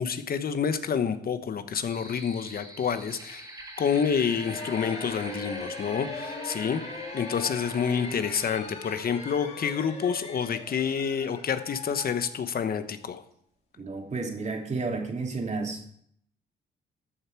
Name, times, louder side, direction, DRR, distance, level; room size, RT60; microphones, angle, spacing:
voice 1, 0.0-3.5 3.8-6.8 7.1-13.2, left 7 dB, 50° left, 10 dB, 1.0 m, -28 dB
sound 1, 1.9-8.6, right 1 dB, 15° right, 2.7 m, -44 dB
sound 2, 4.2-12.9, left 3 dB, 30° left, 2.5 m, -40 dB
voice 2, 13.8-15.9, right 3 dB, 35° right, 2 dB, 2.4 m, -32 dB
13.5 x 6.8 x 4.6 m, 0.67 s
cardioid pair, 90°, 20 cm